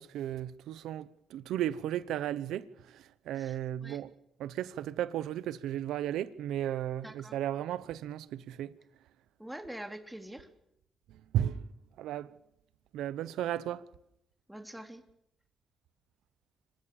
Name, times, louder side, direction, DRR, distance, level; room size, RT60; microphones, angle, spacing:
voice 1, 0.0-4.1 4.4-8.7 11.3-11.7 12.0-12.3 12.9-13.8, right 11 dB, 85° right, 1.0 m, -35 dB
voice 2, 3.3-4.0 7.0-7.4 9.4-10.5 14.5-15.0, right 1 dB, 5° right, 3.7 m, -45 dB
26.5 x 15.5 x 7.3 m
supercardioid pair, 50°, 0 cm